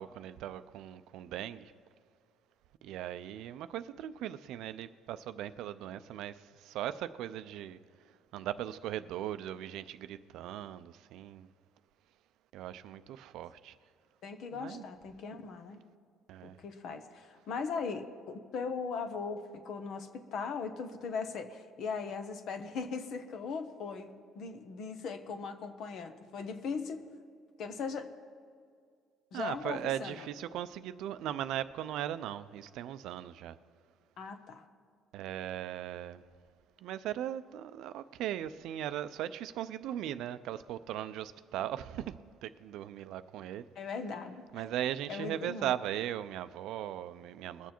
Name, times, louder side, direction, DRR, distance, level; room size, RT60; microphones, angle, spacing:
voice 1, 0.0-1.7 2.8-7.8 8.3-11.5 12.5-13.8 14.5-14.8 16.3-16.6 29.3-33.6 35.1-36.2 36.8-43.7 44.5-47.7, right 11 dB, 75° right, 0.5 m, -38 dB
voice 2, 14.2-15.8 16.4-24.1 24.3-27.1 27.6-28.1 29.3-30.2 34.2-34.6 43.8-44.4 45.1-45.7, left 5 dB, 60° left, 1.1 m, -39 dB
21.0 x 7.1 x 4.5 m
cardioid pair, 115°, 0 cm